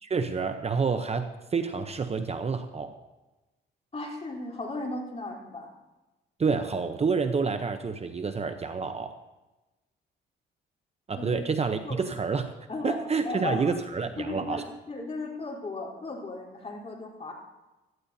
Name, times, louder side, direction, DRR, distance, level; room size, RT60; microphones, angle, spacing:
voice 1, 0.0-3.0 6.4-9.2 11.1-12.5 12.8-14.6, right 5 dB, 30° right, 8 dB, 0.8 m, -28 dB
voice 2, 3.9-5.7 11.2-11.3 11.8-12.0 12.7-13.0 13.2-13.8 14.2-17.3, left 2 dB, 30° left, -1 dB, 3.8 m, -35 dB
17.0 x 13.5 x 2.8 m, 1.1 s
cardioid pair, 90°, 20 cm